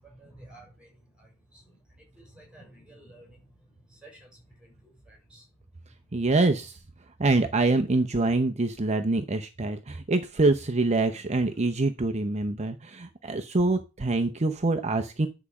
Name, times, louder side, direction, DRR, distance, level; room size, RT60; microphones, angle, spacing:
voice 1, 0.1-0.9 1.2-1.8 2.2-3.4 3.9-5.4, right 1 dB, 5° right, 0 dB, 6.1 m, -52 dB
voice 2, 6.1-6.8 7.2-15.3, right 2 dB, 30° right, 7 dB, 0.7 m, -25 dB
10.5 x 4.9 x 7.1 m, 0.30 s
head